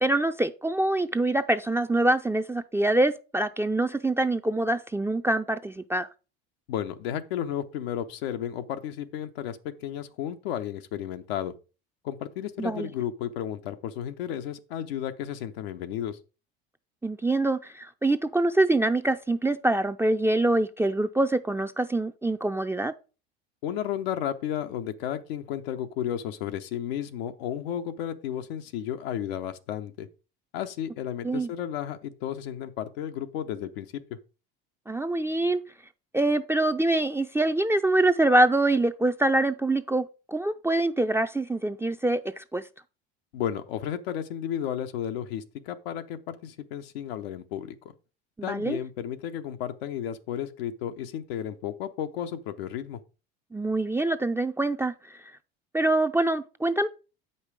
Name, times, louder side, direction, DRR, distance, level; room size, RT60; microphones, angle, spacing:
voice 1, 0.0-6.1 12.6-12.9 17.0-22.9 31.2-31.5 34.9-35.6 36.1-42.6 48.4-48.8 53.5-54.9 55.7-56.9, right 2 dB, 10° right, 0.5 m, -25 dB
voice 2, 6.7-11.5 12.0-16.2 23.6-30.1 30.5-34.2 43.3-47.7 48.4-53.0, left 10 dB, 80° left, 0.8 m, -33 dB
8.0 x 5.5 x 4.8 m
hypercardioid pair, 80°, 30 cm